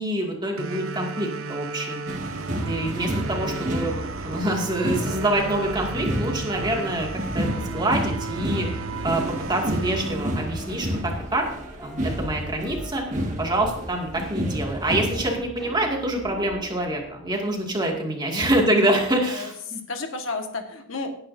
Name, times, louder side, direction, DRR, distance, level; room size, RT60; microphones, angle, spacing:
voice 1, 0.0-2.0 2.6-7.1 7.3-9.2 9.5-11.5 11.8-13.0 13.4-19.8, right 1 dB, 20° right, 0 dB, 2.2 m, -26 dB
sound 1, 0.6-11.6, right 4 dB, 85° right, 0.8 m, -34 dB
sound 2, 2.1-15.4, equal, 35° right, 1.9 m, -30 dB
sound 3, 2.5-17.9, equal, ahead, 4.3 m, -41 dB
voice 2, 9.7-10.0 18.4-18.6 19.3-21.2, left 3 dB, 75° left, 4 dB, 1.7 m, -33 dB
18.0 x 9.7 x 2.7 m, 0.66 s
head